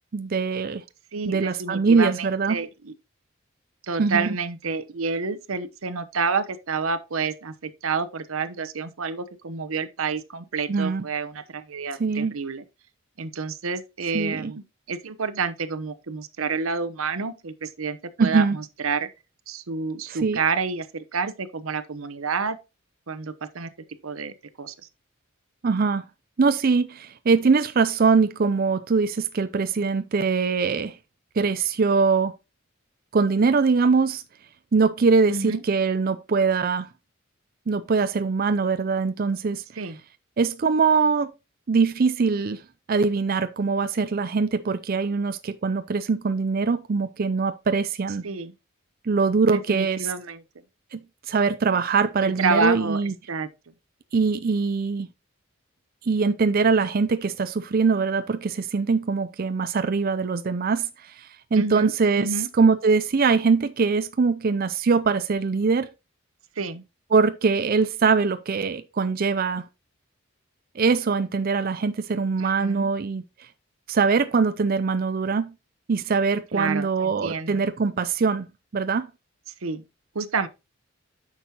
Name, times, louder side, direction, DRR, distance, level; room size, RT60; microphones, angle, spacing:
voice 1, 0.1-0.8 1.3-2.6 4.0-4.4 10.7-11.1 12.0-12.3 14.1-14.5 18.2-18.6 20.1-20.4 25.6-26.0 26.4-31.0 31.4-32.3 33.1-34.2 34.7-36.9 37.7-39.6 40.4-41.3 41.7-42.6 42.9-48.2 49.0-50.1 50.9-51.0 51.3-53.1 54.1-55.1 56.0-62.3 62.6-65.9 67.1-69.7 70.8-73.2 73.9-75.5 75.9-78.5 78.7-79.1, right 4 dB, 45° right, 0.5 m, -22 dB
voice 2, 1.1-2.9 3.8-12.6 13.2-19.1 19.5-22.6 23.1-23.7 24.0-24.7 35.3-35.6 39.8-40.0 48.2-48.5 49.5-50.4 52.2-53.5 61.5-61.9 62.2-62.5 66.6-66.8 72.4-72.9 76.5-77.6 79.6-79.8 80.1-80.5, right 4 dB, 85° right, 0.9 m, -29 dB
9.2 x 6.2 x 2.9 m
head